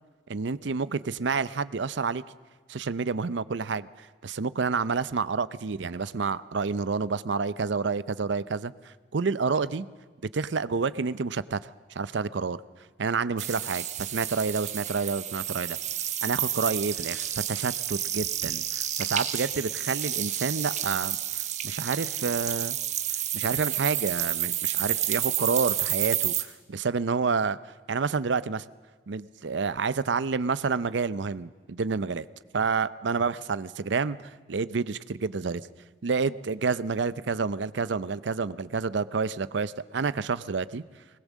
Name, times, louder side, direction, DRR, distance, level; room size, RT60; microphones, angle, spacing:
voice 1, 0.3-2.2 2.7-9.9 10.3-12.6 13.0-15.8 16.2-22.8 23.3-28.6 29.1-32.3 32.5-35.6 36.0-40.8, right 4 dB, 75° right, 16 dB, 0.6 m, -29 dB
sound 1, 13.4-26.4, right 11 dB, 40° right, 1.0 m, -30 dB
20.5 x 19.5 x 7.4 m, 1.4 s
head